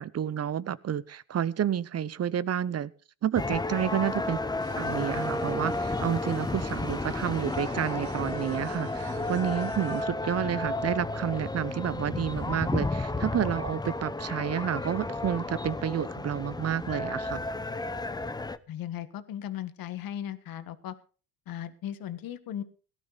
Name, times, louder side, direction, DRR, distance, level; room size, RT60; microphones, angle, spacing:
voice 1, 0.0-2.9 3.2-4.4 4.8-17.4, right 9 dB, 40° right, 19 dB, 0.9 m, -30 dB
sound 1, 3.4-18.6, left 2 dB, 10° left, 0.8 m, -32 dB
sound 2, 4.6-10.1, right 12 dB, 65° right, 1.2 m, -47 dB
voice 2, 18.7-20.9 21.5-22.6, left 11 dB, 60° left, 12 dB, 1.6 m, -37 dB
17.5 x 12.0 x 4.0 m, 0.37 s
supercardioid pair, 70°, 39 cm